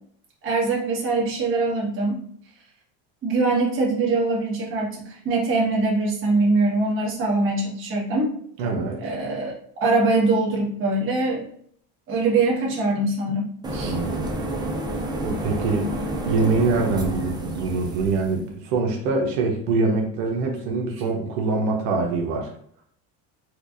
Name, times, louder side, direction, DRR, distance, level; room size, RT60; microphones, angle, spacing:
voice 1, 0.4-2.2 3.2-8.3 9.0-11.5 12.1-14.0, right 3 dB, 35° right, -4 dB, 1.3 m, -23 dB
voice 2, 8.6-9.0 13.8-14.4 15.2-15.9 16.2-22.5, right 3 dB, 80° right, 1 dB, 0.8 m, -24 dB
sound 1, 13.6-18.4, right 1 dB, 10° right, 0.4 m, -29 dB
4.5 x 2.4 x 2.5 m, 0.63 s
cardioid pair, 140°, 37 cm